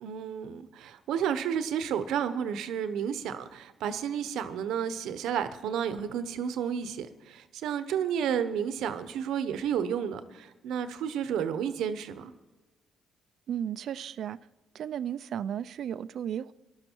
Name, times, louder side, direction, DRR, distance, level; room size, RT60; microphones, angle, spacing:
voice 1, 0.0-12.3, right 8 dB, 85° right, 1.0 m, -31 dB
voice 2, 13.5-14.4 14.7-16.5, right 9 dB, 70° right, 0.5 m, -34 dB
19.0 x 12.5 x 4.6 m
cardioid pair, 90°, 0 cm